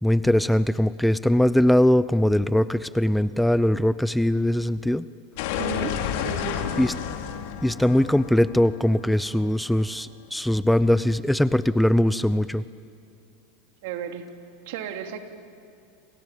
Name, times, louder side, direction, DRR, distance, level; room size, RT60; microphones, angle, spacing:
voice 1, 0.0-5.1 6.8-6.9 7.6-12.6, left 1 dB, 5° left, 16 dB, 0.7 m, -21 dB
sound 1, 5.4-10.1, left 8 dB, 65° left, 2.8 m, -31 dB
voice 2, 5.5-6.8 13.8-14.3 14.7-15.2, right 8 dB, 70° right, 5 dB, 2.8 m, -34 dB
29.0 x 27.0 x 7.4 m, 2.5 s
hypercardioid pair, 100°, 0 cm